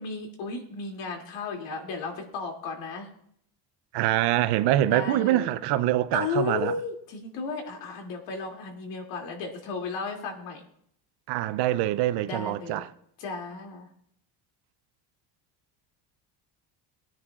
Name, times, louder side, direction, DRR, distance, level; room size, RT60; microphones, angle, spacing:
voice 1, 0.0-3.1 4.9-5.5 6.1-10.6 12.3-12.8 13.2-13.9, left 4 dB, 65° left, 2.7 m, -34 dB
voice 2, 3.9-6.7 11.3-12.9, right 14 dB, 60° right, 0.6 m, -24 dB
20.5 x 10.0 x 2.4 m
cardioid pair, 180°, 46 cm